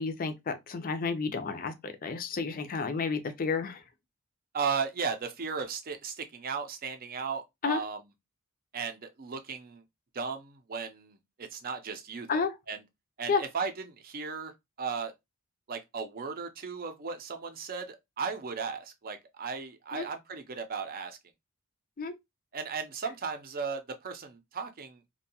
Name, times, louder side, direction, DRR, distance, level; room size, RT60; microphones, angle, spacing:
voice 1, 0.0-3.8 7.6-7.8 12.3-12.5 13.3-13.4 19.9-20.0 22.0-22.2, left 5 dB, 40° left, 0.4 m, -31 dB
voice 2, 4.5-8.0 8.7-9.8 10.1-12.8 13.2-14.5 14.8-15.1 15.7-21.2 22.5-25.0, right 5 dB, 40° right, 0.5 m, -36 dB
2.6 x 2.2 x 2.7 m
head